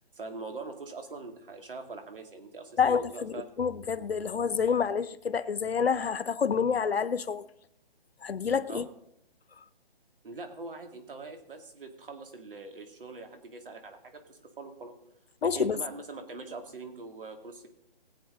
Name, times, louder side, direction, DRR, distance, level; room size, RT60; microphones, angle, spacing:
voice 1, 0.1-3.4 8.7-8.9 10.2-14.9 15.4-17.7, right 3 dB, 60° right, 2.4 m, -43 dB
voice 2, 2.8-3.3 3.6-7.4 8.2-8.9 15.4-15.8, left 6 dB, 90° left, 0.9 m, -28 dB
20.0 x 8.2 x 3.8 m
hypercardioid pair, 170°, 30 cm